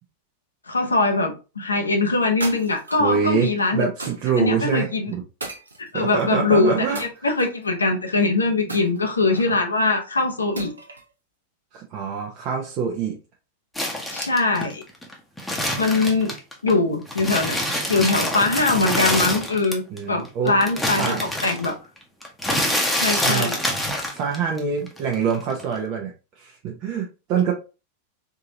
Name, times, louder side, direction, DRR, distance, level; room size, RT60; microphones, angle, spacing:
voice 1, 0.7-3.9 4.4-5.1 5.8-10.7 14.1-14.8 15.8-16.3 16.6-17.6 17.9-19.8 20.1-21.8 22.9-23.6, left 3 dB, 75° left, 0.7 m, -22 dB
sound 1, 2.4-3.2 4.0-4.4 5.4-6.2 6.9-7.7 8.7-9.6 10.6-11.1, right 2 dB, 75° right, 0.7 m, -36 dB
voice 2, 3.0-5.2 5.9-7.0 9.5-9.6 11.7-13.1 19.9-20.6 21.0-21.2 23.2-23.5 24.1-26.1 26.4-27.5, right 6 dB, 40° right, 0.7 m, -25 dB
sound 2, 13.8-16.7 17.1-20.0 20.2-24.6 24.9-25.8, left 1 dB, 5° left, 0.9 m, -26 dB
3.6 x 2.8 x 2.7 m
figure-of-eight pair, 90°, 0 cm